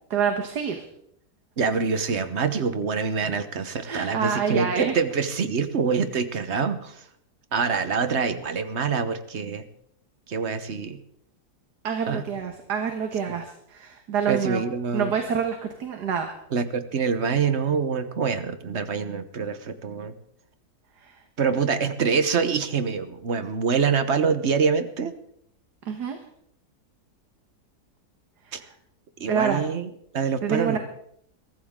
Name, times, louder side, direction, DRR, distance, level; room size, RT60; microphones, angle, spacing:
voice 1, 0.1-0.8 3.9-4.9 11.8-14.6 14.9-16.3 21.0-21.2 25.9-26.2 28.5-28.6 29.3-29.6 30.4-30.8, right 7 dB, 80° right, 5 dB, 1.9 m, -27 dB
voice 2, 1.6-7.1 7.5-9.6 10.3-11.0 12.1-12.2 14.3-15.1 16.5-20.1 21.4-25.1 28.5-28.6 29.2-30.8, right 5 dB, 45° right, 11 dB, 1.2 m, -25 dB
22.0 x 14.5 x 3.7 m, 0.71 s
omnidirectional pair, 1.7 m